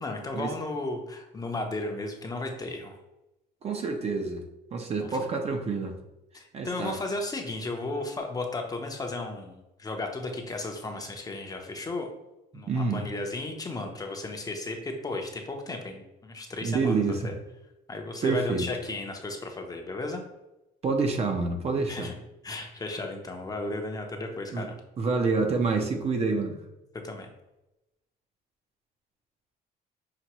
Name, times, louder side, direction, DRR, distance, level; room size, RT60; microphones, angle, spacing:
voice 1, 0.0-3.0 5.0-5.2 6.3-12.1 12.5-17.3 17.9-20.2 21.9-22.1 22.4-24.7 27.0-27.3, left 2 dB, 20° left, 3 dB, 0.7 m, -34 dB
voice 2, 3.6-4.4 4.7-6.0 6.5-7.0 12.5-13.0 16.6-17.3 18.2-18.7 20.8-22.1 24.5-24.7 25.0-26.6, right 4 dB, 40° right, 4 dB, 0.7 m, -27 dB
5.8 x 2.5 x 3.0 m, 0.95 s
cardioid pair, 110°, 17 cm